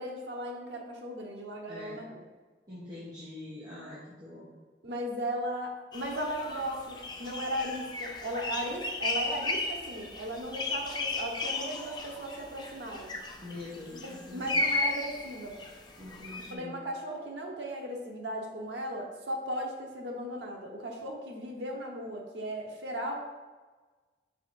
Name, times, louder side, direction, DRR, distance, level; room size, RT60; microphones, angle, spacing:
voice 1, 0.0-2.2 4.8-13.1 13.9-15.6 16.5-23.1, equal, 85° right, 0 dB, 1.1 m, -37 dB
voice 2, 1.7-2.0 2.7-4.5 13.4-14.6 16.0-16.8, left 2 dB, 20° right, -10 dB, 1.2 m, -44 dB
sound 1, 5.9-16.5, left 2 dB, 25° left, 0.5 m, -35 dB
5.8 x 3.6 x 4.6 m, 1.3 s
head